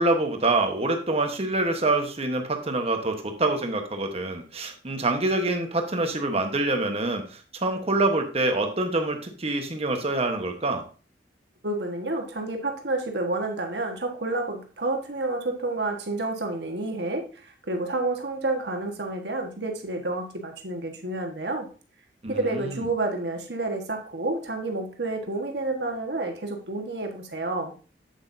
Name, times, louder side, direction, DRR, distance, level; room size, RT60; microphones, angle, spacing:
voice 1, 0.0-10.8 22.2-22.8, right 2 dB, 35° right, 5 dB, 1.1 m, -26 dB
voice 2, 11.6-21.7 22.3-27.8, right 2 dB, 65° right, 3 dB, 1.4 m, -29 dB
8.1 x 8.0 x 2.7 m, 0.38 s
head